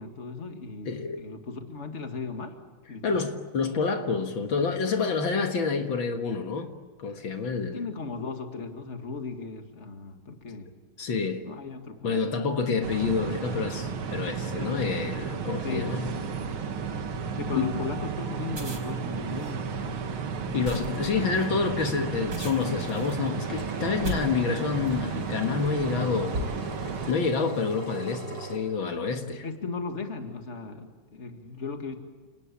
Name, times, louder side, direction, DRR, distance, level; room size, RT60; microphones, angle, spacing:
voice 1, 0.0-2.6 2.9-3.3 7.7-10.7 11.4-12.3 15.6-16.3 17.4-20.9 29.4-32.0, left 4 dB, 35° left, 5 dB, 2.4 m, -37 dB
voice 2, 0.9-1.2 3.0-6.7 7.0-7.8 11.0-11.4 12.0-16.0 17.4-17.7 20.5-26.4 27.1-29.4, left 5 dB, 70° left, 5 dB, 2.4 m, -28 dB
sound 1, 12.8-27.1, right 6 dB, 90° right, 2.4 m, -33 dB
sound 2, 18.4-25.1 25.7-25.9 26.3-27.0, equal, 60° right, 5.4 m, -38 dB
Engine, 22.6-28.6, right 2 dB, 25° right, 4.3 m, -41 dB
29.5 x 19.0 x 8.6 m, 1.4 s
omnidirectional pair, 2.2 m